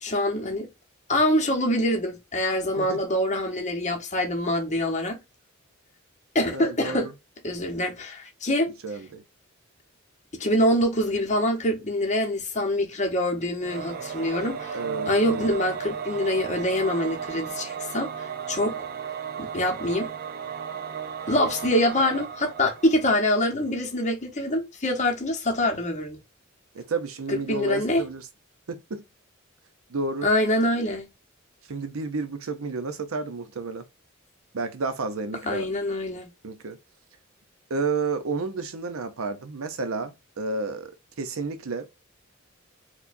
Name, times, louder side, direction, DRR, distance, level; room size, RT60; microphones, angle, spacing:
voice 1, 0.0-0.7 1.1-5.2 6.3-7.1 7.4-8.7 10.4-14.8 15.1-18.8 19.5-20.1 21.3-26.2 27.3-28.0 30.2-31.1 35.4-36.3, left 1 dB, 35° left, 1.0 m, -25 dB
voice 2, 6.5-7.1 8.8-9.2 14.7-15.5 26.7-28.2 28.7-29.0 29.9-30.3 31.7-33.9 34.5-35.7 36.4-36.8 37.7-40.9 41.2-41.9, right 3 dB, 90° right, 0.6 m, -31 dB
Singing / Musical instrument, 13.6-23.6, right 7 dB, 45° right, 0.4 m, -35 dB
4.6 x 2.3 x 2.6 m
head